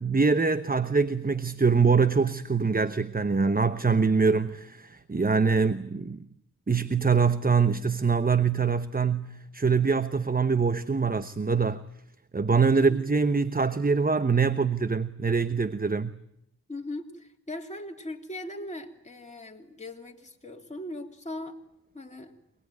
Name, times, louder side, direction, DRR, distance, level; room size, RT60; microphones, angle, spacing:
voice 1, 0.0-6.3 6.7-11.8 12.3-16.1, right 5 dB, 25° right, 1.0 m, -24 dB
voice 2, 12.7-13.0 15.8-16.0 16.7-21.6 21.9-22.3, left 1 dB, 20° left, 3.1 m, -39 dB
26.5 x 20.0 x 9.3 m
cardioid pair, 50°, 37 cm